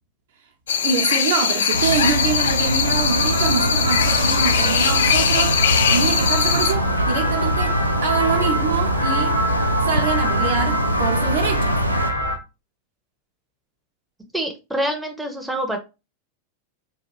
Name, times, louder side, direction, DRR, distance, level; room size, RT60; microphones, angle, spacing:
sound 1, 0.7-6.7, left 7 dB, 65° left, 0.3 m, -21 dB
voice 1, 0.8-5.6 5.9-9.4 9.8-11.8, right 6 dB, 60° right, 0.8 m, -25 dB
sound 2, 1.7-12.1, right 1 dB, 85° right, 0.4 m, -23 dB
sound 3, 3.0-12.4, equal, 90° left, 0.8 m, -26 dB
voice 2, 14.3-15.8, right 1 dB, 5° right, 0.6 m, -26 dB
3.9 x 2.5 x 3.0 m
figure-of-eight pair, 90°, 0 cm